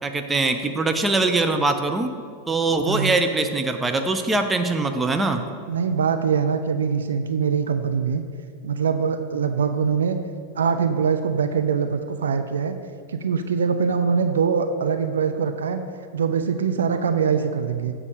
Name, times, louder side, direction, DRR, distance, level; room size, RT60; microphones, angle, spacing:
voice 1, 0.0-2.1 2.5-5.4, right 3 dB, 15° right, 6 dB, 0.6 m, -22 dB
voice 2, 2.9-3.2 5.7-8.2 8.6-10.2 10.6-12.8 13.1-15.8 16.1-17.9, right 6 dB, 65° right, 8 dB, 0.4 m, -23 dB
7.5 x 4.8 x 6.4 m, 2.1 s
figure-of-eight pair, 90°, 0 cm